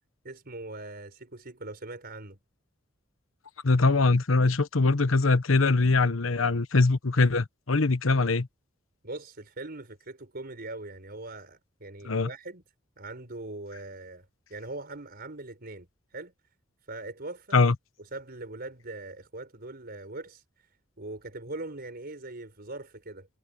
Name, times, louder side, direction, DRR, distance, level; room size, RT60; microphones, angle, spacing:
voice 1, 0.2-2.4 9.0-12.6 13.0-16.3 16.9-17.6 18.0-20.7 21.0-23.3, right 2 dB, 50° right, 4.8 m, -41 dB
voice 2, 3.6-8.5 12.0-12.3 17.5-17.7, left 3 dB, 85° left, 1.1 m, -22 dB
head